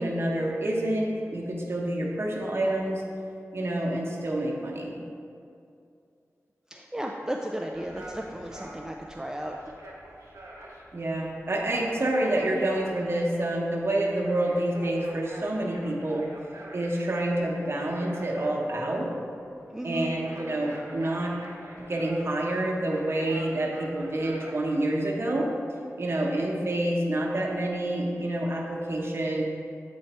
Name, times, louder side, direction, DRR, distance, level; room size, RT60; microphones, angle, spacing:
voice 1, 0.0-3.0 3.5-4.9 10.9-16.3 16.7-19.1 19.8-21.3 21.8-25.5 26.0-29.4, right 1 dB, 50° right, -2 dB, 0.9 m, -28 dB
voice 2, 6.7-9.5 19.7-20.1, right 1 dB, 10° right, 0 dB, 0.4 m, -34 dB
sound 1, 7.7-25.0, right 1 dB, 75° right, 1.0 m, -47 dB
7.9 x 3.1 x 4.2 m, 2.5 s
wide cardioid pair, 60°, 5 cm